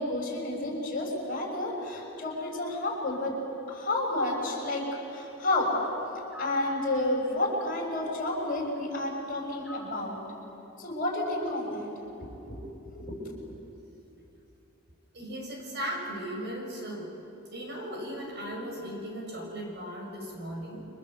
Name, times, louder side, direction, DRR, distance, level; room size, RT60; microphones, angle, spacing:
voice 1, 0.0-3.3 3.7-4.8 5.1-5.7 6.4-10.2 10.8-11.9 12.2-12.6 12.9-13.2, left 2 dB, 45° left, -1 dB, 6.7 m, -30 dB
sound 1, 6.3-6.7 9.6-10.1, left 2 dB, 5° right, 5.4 m, -45 dB
voice 2, 15.1-17.1 17.5-20.9, equal, 55° right, 0 dB, 6.9 m, -37 dB
30.0 x 25.0 x 7.9 m, 2.9 s
head